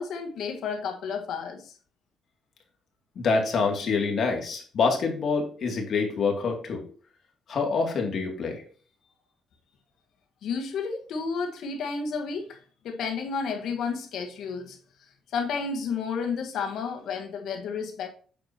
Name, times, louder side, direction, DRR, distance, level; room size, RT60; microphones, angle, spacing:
voice 1, 0.0-1.7 10.4-12.6 12.8-14.8 15.3-18.1, left 5 dB, 75° left, 1.6 m, -31 dB
voice 2, 3.2-6.8 7.5-8.6, left 4 dB, 60° left, 2.6 m, -26 dB
8.7 x 6.5 x 2.9 m
cardioid pair, 90°, 0 cm